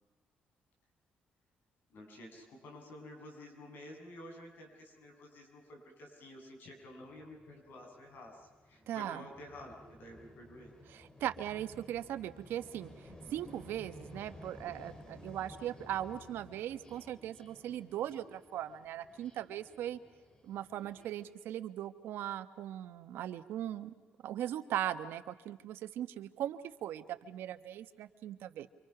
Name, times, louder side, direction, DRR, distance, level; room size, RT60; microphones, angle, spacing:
voice 1, 1.9-10.7, left 1 dB, 70° left, 2 dB, 7.9 m, -51 dB
sound 1, 6.8-21.3, left 1 dB, 20° left, 3.6 m, -55 dB
voice 2, 8.9-9.2 10.9-20.0 20.4-23.9 24.2-28.7, right 11 dB, 85° right, 11 dB, 1.2 m, -39 dB
28.0 x 25.5 x 6.0 m, 1.3 s
cardioid pair, 100°, 4 cm